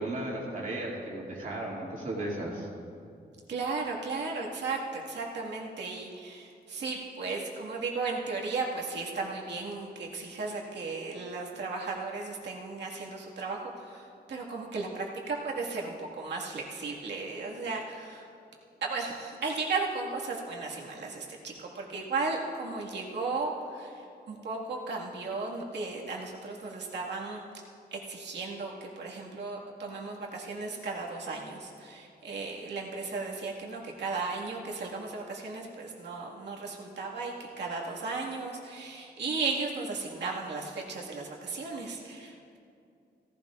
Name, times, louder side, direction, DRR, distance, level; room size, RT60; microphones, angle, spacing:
voice 1, 0.0-2.7, right 1 dB, 50° right, -4 dB, 2.5 m, -35 dB
voice 2, 3.5-18.3 18.8-27.4 27.9-42.6, right 3 dB, 80° right, -3 dB, 1.9 m, -35 dB
17.0 x 16.0 x 2.5 m, 2.5 s
wide cardioid pair, 180°, 18 cm